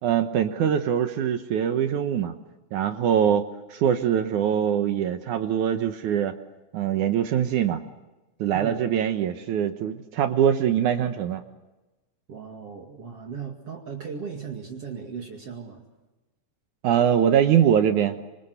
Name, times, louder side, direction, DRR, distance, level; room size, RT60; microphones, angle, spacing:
voice 1, 0.0-2.3 2.7-6.3 6.7-7.8 8.4-11.4 16.8-18.2, right 9 dB, 70° right, 7 dB, 2.4 m, -23 dB
voice 2, 8.5-8.9 12.3-15.8, right 6 dB, 50° right, 1 dB, 3.1 m, -37 dB
27.5 x 26.0 x 8.0 m, 1.1 s
omnidirectional pair, 3.8 m